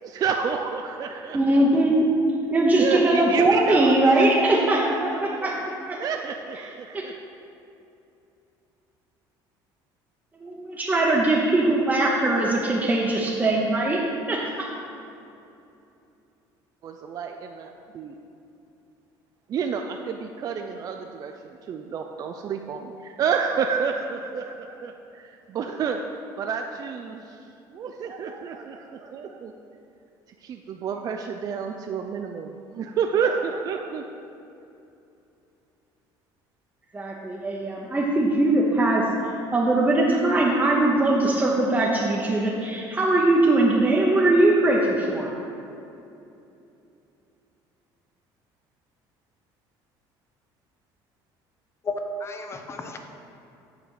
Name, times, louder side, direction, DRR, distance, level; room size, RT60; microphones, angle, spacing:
voice 1, 0.0-1.6 2.8-4.4 5.3-5.5 6.0-7.1 16.8-18.2 19.5-26.0 26.4-27.4 27.7-29.5 30.4-34.0, right 6 dB, 45° right, 4 dB, 0.4 m, -30 dB
voice 2, 1.3-2.1 2.5-6.0 10.4-14.0 14.3-14.4 14.7-14.8 36.9-39.0 39.5-45.3, right 2 dB, 15° right, -4 dB, 0.9 m, -21 dB
voice 3, 51.9-53.0, left 2 dB, 30° left, 5 dB, 0.8 m, -32 dB
8.1 x 4.1 x 6.5 m, 2.7 s
cardioid pair, 110°, 9 cm